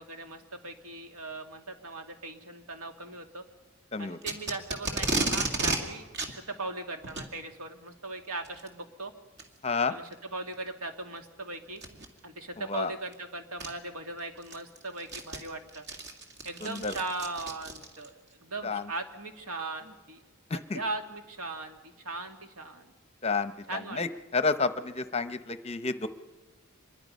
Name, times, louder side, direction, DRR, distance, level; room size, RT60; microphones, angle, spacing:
voice 1, 0.0-3.4 4.0-9.1 9.9-11.8 12.2-15.9 16.4-18.1 18.4-20.2 20.5-22.9 23.7-24.0, right 2 dB, 80° right, 5 dB, 2.1 m, -39 dB
Packing tape duct tape, 4.2-5.8 6.1-6.3 7.0-7.3 8.4-8.7 9.4-9.5 10.1-10.2 11.8-12.1 13.1-13.2 13.6-13.7 14.2-18.1, right 2 dB, 50° right, 2.3 m, -32 dB
voice 2, 9.6-9.9 12.7-12.9 16.8-16.9 18.6-18.8 20.5-20.8 23.2-23.5 24.0-24.1 24.3-26.1, left 4 dB, 25° left, 12 dB, 0.7 m, -29 dB
25.5 x 22.0 x 5.4 m, 1.2 s
head